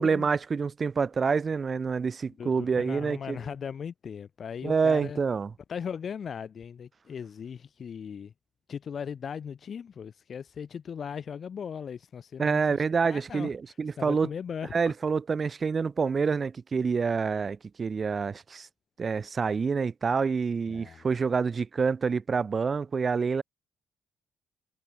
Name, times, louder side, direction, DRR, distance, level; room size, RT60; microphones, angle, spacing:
voice 1, 0.0-3.4 4.6-5.5 12.4-14.3 14.7-18.7 19.0-23.4, right 5 dB, 40° right, 0.5 m, -27 dB
voice 2, 2.4-5.2 5.7-8.3 8.7-14.9 20.7-21.1, left 7 dB, 50° left, 2.4 m, -38 dB
cardioid pair, 90°, 0 cm